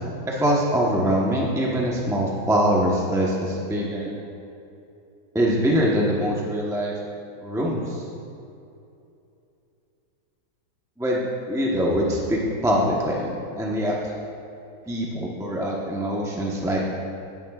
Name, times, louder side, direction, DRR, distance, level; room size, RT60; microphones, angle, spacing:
voice 1, 0.3-4.1 5.3-6.9 7.4-8.0 11.0-13.3 13.6-14.1 14.9-16.8, equal, 5° right, -4 dB, 0.4 m, -23 dB
18.5 x 9.4 x 2.4 m, 2.7 s
omnidirectional pair, 2.2 m